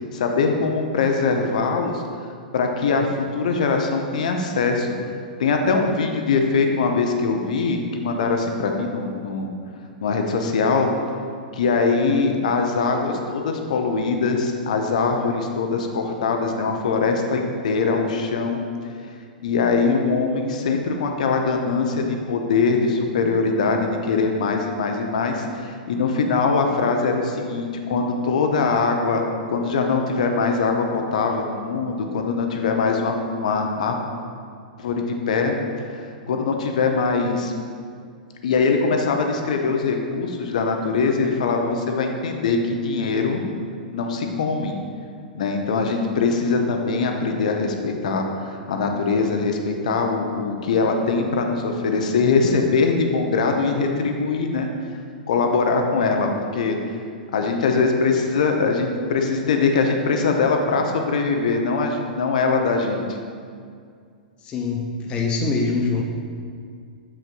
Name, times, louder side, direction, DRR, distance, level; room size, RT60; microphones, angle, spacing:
voice 1, 0.1-2.0 2.5-4.9 5.4-9.5 10.0-10.9 11.5-18.6 19.4-29.2 29.5-34.0 34.8-35.6 35.9-37.5 38.4-42.6 42.8-43.4 43.9-44.7 45.3-54.7 55.3-56.8 57.3-63.0, left 4 dB, 55° left, 3 dB, 0.8 m, -22 dB
voice 2, 64.4-66.0, left 4 dB, 20° left, 1 dB, 0.6 m, -24 dB
8.0 x 7.2 x 2.6 m, 2.2 s
figure-of-eight pair, 105°, 5 cm